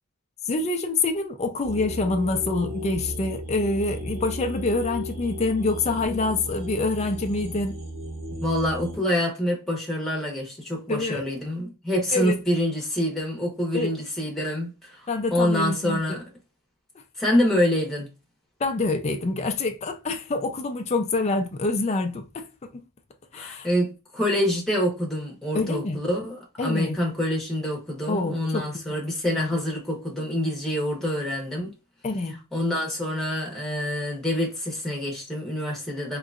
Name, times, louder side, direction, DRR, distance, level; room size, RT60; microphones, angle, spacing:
voice 1, 0.4-7.8 10.9-11.2 12.1-12.4 13.7-13.9 15.1-16.2 18.6-22.8 23.3-23.7 25.5-26.0 26.6-26.9 28.1-28.6 32.0-32.4, left 3 dB, 30° left, 0.4 m, -26 dB
sound 1, 1.6-8.9, left 1 dB, 30° right, 1.4 m, -35 dB
voice 2, 8.4-15.0 15.3-16.2 17.2-18.1 23.3-31.7 32.5-36.2, left 1 dB, ahead, 1.0 m, -26 dB
3.7 x 3.0 x 2.4 m
head